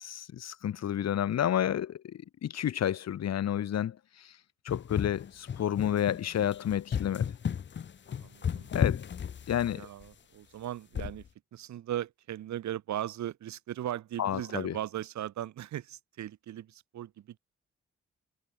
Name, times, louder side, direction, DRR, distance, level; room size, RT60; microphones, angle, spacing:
voice 1, 0.0-4.3 4.6-7.3 8.7-9.0 9.5-9.9 14.2-14.7, left 10 dB, 60° left, 1.4 m, -30 dB
sound 1, 4.7-10.0 10.9-11.3, left 8 dB, 40° left, 0.7 m, -33 dB
voice 2, 8.2-8.7 9.7-11.3 11.5-17.4, right 12 dB, 75° right, 5.9 m, -38 dB
hypercardioid pair, 40°, 29 cm